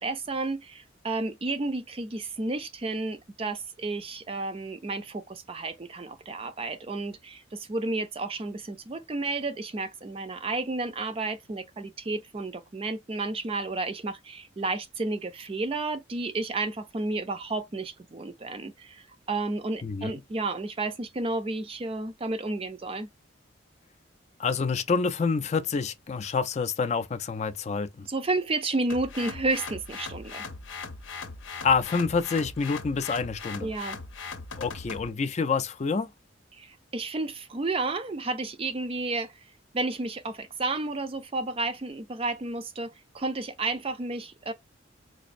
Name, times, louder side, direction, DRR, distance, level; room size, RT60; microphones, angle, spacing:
voice 1, 0.0-23.1 28.1-30.4 33.6-34.0 36.5-39.5 39.7-44.5, right 3 dB, 30° right, 0.4 m, -32 dB
voice 2, 19.8-20.1 24.4-28.1 31.6-33.7 34.6-36.1, left 5 dB, 35° left, 0.3 m, -27 dB
sound 1, 28.9-35.1, left 4 dB, 80° left, 0.7 m, -39 dB
4.0 x 2.5 x 2.5 m
head